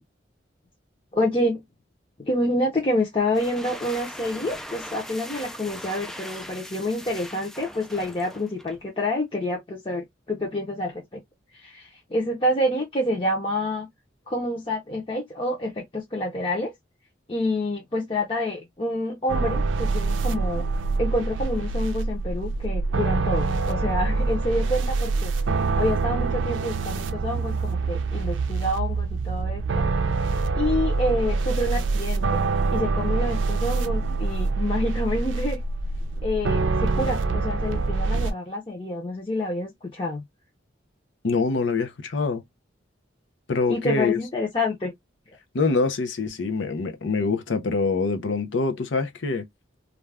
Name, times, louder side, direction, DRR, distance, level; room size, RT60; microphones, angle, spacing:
voice 1, 1.1-1.6 2.2-11.2 11.5-13.9 14.3-16.7 17.3-20.7 21.0-25.3 25.6-29.9 30.5-32.5 32.7-35.6 36.2-40.2 43.7-44.9 45.3-45.4, left 1 dB, 30° left, 0.7 m, -28 dB
sound 1, 3.2-8.9, equal, 5° left, 0.3 m, -40 dB
sound 2, 19.3-38.3, right 3 dB, 85° right, 0.5 m, -25 dB
voice 2, 41.2-42.4 43.5-44.2 45.5-49.4, left 4 dB, 80° left, 0.6 m, -25 dB
2.5 x 2.2 x 3.3 m
head